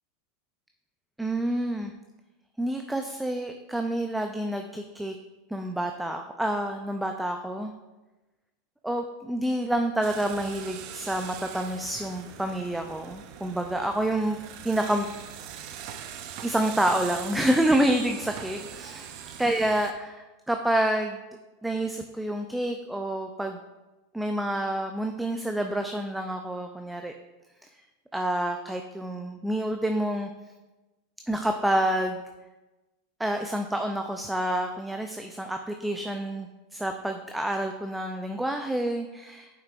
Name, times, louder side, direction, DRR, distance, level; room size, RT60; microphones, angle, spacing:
voice 1, 1.2-1.9 2.6-5.2 5.5-7.7 8.8-14.4 14.6-15.1 16.4-19.1 19.4-21.2 21.6-23.6 24.1-27.1 28.1-30.3 31.3-32.2 33.2-39.5, right 1 dB, 5° right, 4 dB, 0.4 m, -28 dB
sound 1, 10.0-19.9, right 9 dB, 55° right, 0.6 m, -41 dB
7.4 x 5.8 x 2.5 m, 1.1 s
hypercardioid pair, 105°, 0 cm